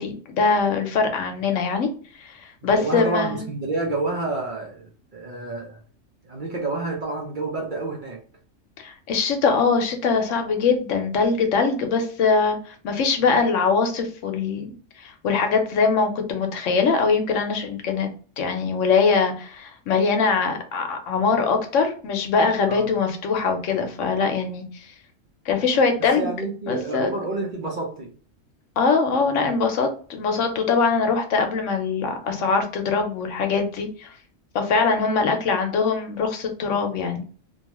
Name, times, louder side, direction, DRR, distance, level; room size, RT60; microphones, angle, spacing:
voice 1, 0.0-1.9 2.2-3.5 8.8-14.7 15.0-18.1 18.4-24.6 25.5-26.3 26.7-27.1 28.8-34.1 34.5-37.2, left 4 dB, 75° left, 0.9 m, -22 dB
voice 2, 2.6-5.8 6.2-8.2 22.7-22.9 26.2-28.1, right 2 dB, 50° right, 0.7 m, -29 dB
2.7 x 2.3 x 2.9 m
omnidirectional pair, 1.4 m